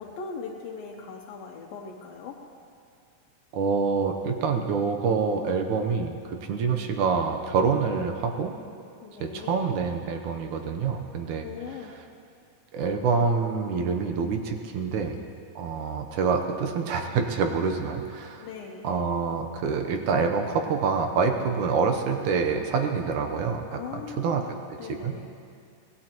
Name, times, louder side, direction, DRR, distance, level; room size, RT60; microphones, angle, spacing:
voice 1, 0.0-2.4 9.0-9.6 11.4-12.0 18.4-18.9 23.7-24.5 24.8-25.3, left 5 dB, 80° left, -2 dB, 2.7 m, -39 dB
voice 2, 3.5-8.6 9.2-11.5 12.7-15.2 15.6-18.5 18.8-24.4 24.9-25.1, right 5 dB, 70° right, 4 dB, 2.1 m, -26 dB
25.0 x 18.0 x 3.0 m, 2.4 s
omnidirectional pair, 4.1 m